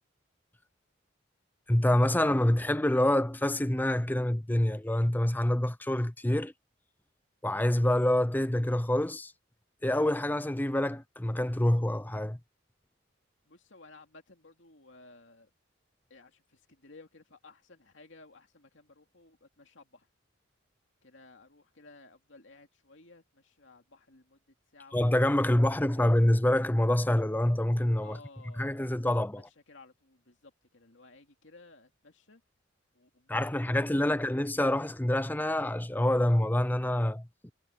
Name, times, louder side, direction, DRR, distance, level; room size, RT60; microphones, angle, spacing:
voice 1, 1.7-6.5 7.4-9.3 9.8-12.4 24.9-28.2 28.6-29.5 33.3-37.5, left 1 dB, 10° left, 0.6 m, -26 dB
voice 2, 13.5-15.5 16.1-20.1 21.0-25.0 25.4-26.1 28.0-32.4 32.9-34.3, left 3 dB, 65° left, 2.8 m, -56 dB
head